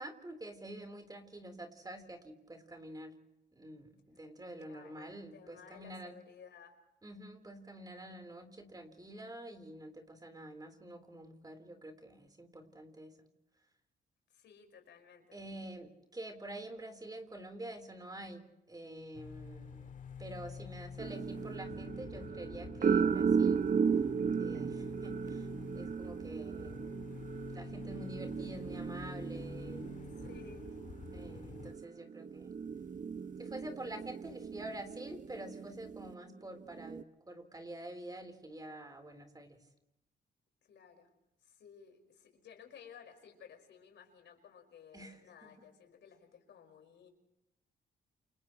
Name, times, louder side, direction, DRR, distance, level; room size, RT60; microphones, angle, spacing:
voice 1, 0.0-3.1 3.5-6.2 7.0-13.2 15.3-19.9 20.2-23.6 24.4-25.5 25.7-26.9 27.5-30.5 31.1-32.5 33.4-39.6 44.9-45.7, right 1 dB, 20° right, 5 dB, 4.0 m, -47 dB
voice 2, 4.6-6.8 14.3-15.4 30.2-30.8 40.6-41.1 41.4-47.1, left 7 dB, 75° left, 4 dB, 5.3 m, -56 dB
sound 1, 19.1-31.7, left 5 dB, 45° left, 1.7 m, -48 dB
sound 2, 21.0-36.1 36.7-37.0, right 6 dB, 45° right, 0.8 m, -36 dB
29.0 x 29.0 x 3.2 m, 0.89 s
cardioid pair, 85°, 19 cm